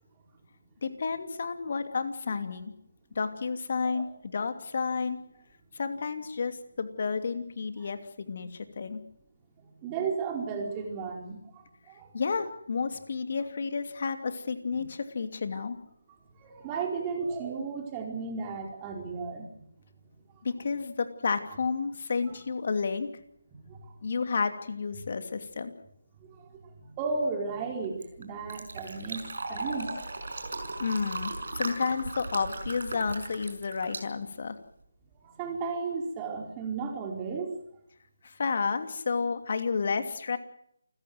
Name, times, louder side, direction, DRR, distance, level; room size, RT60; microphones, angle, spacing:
voice 1, 0.8-2.7 3.1-5.2 5.7-9.0 12.1-15.8 20.4-23.1 24.0-25.7 30.8-34.6 38.2-40.4, left 5 dB, 50° left, 8 dB, 2.8 m, -31 dB
voice 2, 9.8-12.1 14.7-14.8 15.5-15.6 16.4-19.6 22.2-22.4 23.5-23.9 26.3-29.9 30.9-31.0 35.2-37.5, right 4 dB, 20° right, 2 dB, 4.6 m, -34 dB
Fill (with liquid), 27.7-34.8, right 3 dB, 60° right, 5.8 m, -38 dB
29.0 x 15.5 x 7.9 m, 0.70 s
figure-of-eight pair, 155°, 0 cm